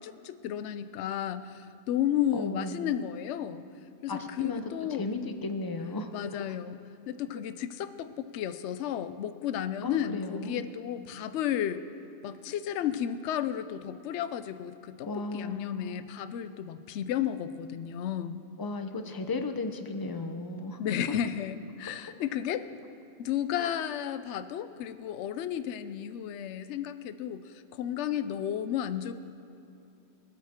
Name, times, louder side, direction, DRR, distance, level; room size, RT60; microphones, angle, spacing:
voice 1, 0.0-3.7 4.0-5.1 6.1-6.8 7.1-11.8 12.2-18.4 20.8-22.8 23.2-29.1, left 10 dB, 75° left, 12 dB, 0.9 m, -33 dB
voice 2, 2.3-2.9 4.1-4.6 5.0-6.6 9.8-10.7 15.0-16.0 18.6-20.8 23.6-23.8, left 3 dB, 25° left, 6 dB, 0.6 m, -35 dB
24.5 x 8.7 x 3.6 m, 2.7 s
omnidirectional pair, 1.2 m